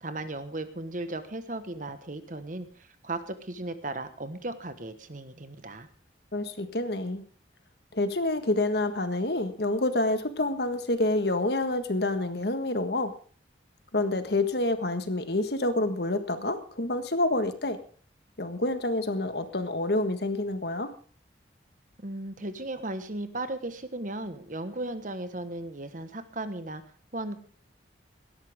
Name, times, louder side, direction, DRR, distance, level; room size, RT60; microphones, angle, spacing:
voice 1, 0.0-5.9 22.0-26.8 27.1-27.4, right 2 dB, 45° right, 10 dB, 1.3 m, -36 dB
voice 2, 6.3-7.2 7.9-13.1 13.9-17.8 18.4-20.9, left 2 dB, 60° left, 9 dB, 1.6 m, -28 dB
17.5 x 13.0 x 3.6 m, 0.44 s
head